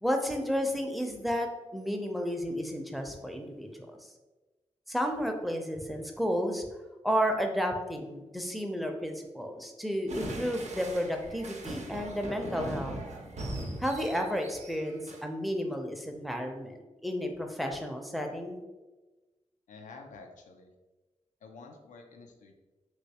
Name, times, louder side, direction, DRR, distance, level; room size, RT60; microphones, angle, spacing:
voice 1, 0.0-4.0 4.9-6.7 7.0-12.9 13.8-16.8 17.0-18.6, equal, ahead, 3 dB, 0.6 m, -32 dB
sound 1, 10.1-15.2, right 1 dB, 65° right, 0.6 m, -40 dB
voice 2, 19.7-20.7 21.4-22.5, left 4 dB, 85° left, 3 dB, 0.4 m, -49 dB
3.1 x 3.0 x 2.8 m, 1.2 s
cardioid pair, 45°, 13 cm